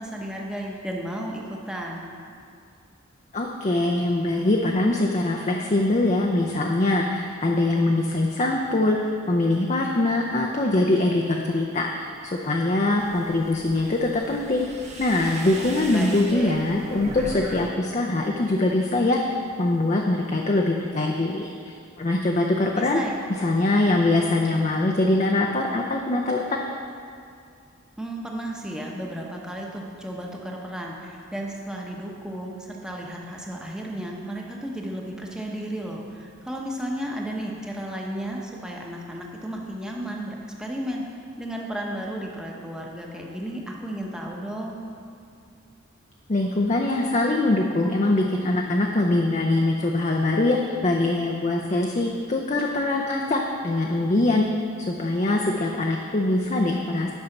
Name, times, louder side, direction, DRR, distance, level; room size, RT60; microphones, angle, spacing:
voice 1, 0.0-2.1 15.9-16.5 22.7-23.3 28.0-41.0 41.4-44.8, right 1 dB, 5° right, -1 dB, 0.9 m, -33 dB
voice 2, 3.3-9.0 9.3-14.7 15.0-23.0 23.4-26.6 46.3-54.5 54.8-57.1, left 2 dB, 35° left, 0 dB, 0.5 m, -23 dB
sound 1, 13.0-17.7 18.0-18.6, right 1 dB, 30° right, 1.0 m, -38 dB
10.5 x 5.5 x 5.9 m, 2.4 s
head